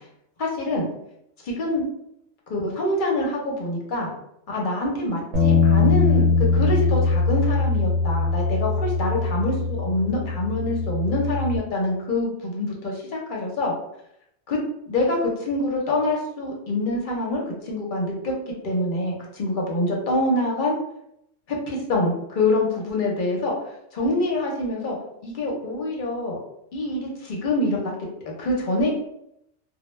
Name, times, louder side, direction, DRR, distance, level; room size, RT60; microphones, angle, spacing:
voice 1, 0.4-0.9 1.4-1.9 2.5-4.1 4.5-9.5 9.8-13.7 14.5-14.6 14.9-18.3 18.6-20.7 21.5-23.5 23.9-25.0 25.2-26.4 26.7-27.9 28.2-28.9, left 1 dB, 50° left, -2 dB, 0.7 m, -25 dB
Bass guitar, 5.3-11.6, left 4 dB, 65° right, 0.9 m, -21 dB
2.1 x 2.0 x 3.0 m, 0.77 s
omnidirectional pair, 1.2 m